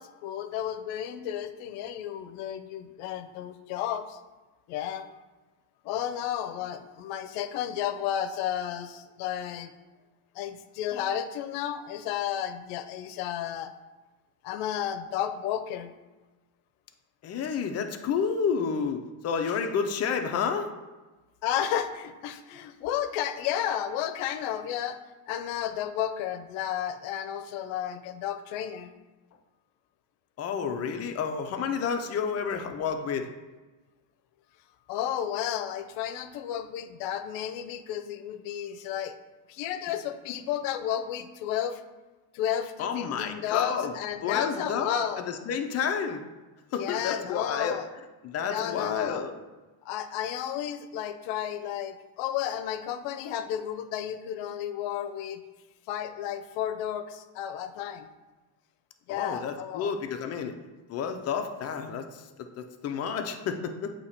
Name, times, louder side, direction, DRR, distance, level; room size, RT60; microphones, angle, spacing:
voice 1, 0.0-4.2 4.7-5.1 5.8-9.7 10.3-13.7 14.4-15.9 21.4-25.0 25.3-28.9 34.9-39.1 39.5-41.8 42.3-45.2 46.7-47.9 48.5-49.2 49.8-55.4 55.9-58.1 59.1-59.9, left 10 dB, 70° left, 9 dB, 0.7 m, -32 dB
voice 2, 17.2-20.7 30.4-33.3 42.8-43.9 44.2-46.2 46.7-47.8 48.2-49.3 59.1-60.5 60.9-62.2 62.6-63.9, left 6 dB, 30° left, 5 dB, 0.4 m, -30 dB
8.3 x 2.9 x 4.2 m, 1.2 s
cardioid pair, 135°, 50 cm